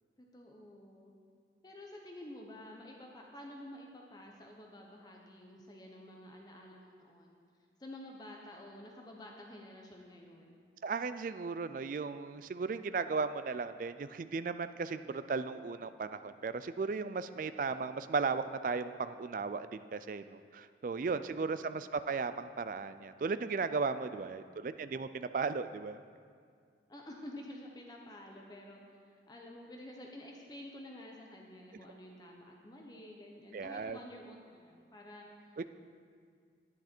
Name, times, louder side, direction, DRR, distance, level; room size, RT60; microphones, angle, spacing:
voice 1, 0.2-1.1 1.6-7.4 7.8-10.6 17.4-17.5 21.1-21.8 24.0-24.8 26.9-28.8 29.0-35.7, left 1 dB, 25° left, 0 dB, 0.8 m, -50 dB
voice 2, 10.8-26.0 33.5-34.0, right 4 dB, 50° right, 12 dB, 0.3 m, -36 dB
10.5 x 9.9 x 4.4 m, 2.1 s
head